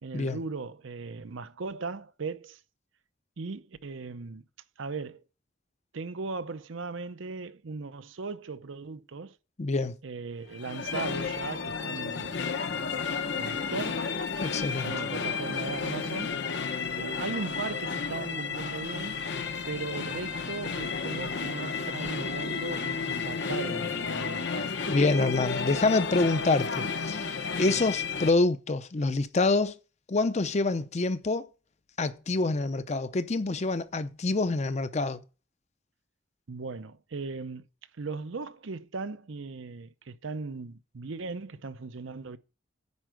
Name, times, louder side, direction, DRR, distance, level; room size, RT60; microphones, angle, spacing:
voice 1, 0.0-2.6 3.4-4.4 4.8-5.2 5.9-9.4 10.0-12.4 12.7-13.0 13.4-14.2 14.7-16.4 17.0-19.2 19.7-24.7 27.7-27.8 36.5-37.6 38.0-42.4, right 4 dB, 80° right, 0.7 m, -38 dB
voice 2, 9.6-10.0 14.4-14.9 24.9-29.7 30.1-31.5 32.0-35.2, left 3 dB, 35° left, 0.6 m, -26 dB
sound 1, 10.5-28.3, left 5 dB, 60° left, 0.9 m, -32 dB
9.6 x 4.6 x 7.6 m
head